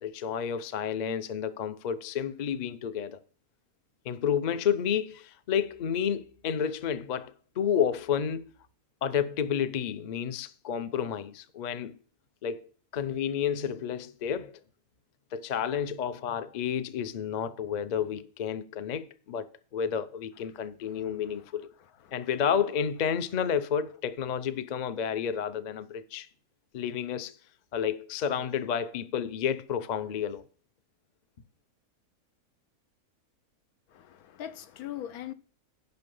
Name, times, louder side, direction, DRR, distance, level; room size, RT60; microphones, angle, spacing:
voice 1, 0.0-3.2 4.0-8.5 9.0-12.0 12.4-12.6 12.9-14.6 15.3-21.7 22.1-26.3 26.7-27.4 27.7-30.4, left 8 dB, 50° left, 0.5 m, -30 dB
voice 2, 20.6-21.0 22.0-22.2 33.9-35.3, left 11 dB, 85° left, 1.2 m, -41 dB
10.5 x 5.6 x 5.4 m
omnidirectional pair, 1.5 m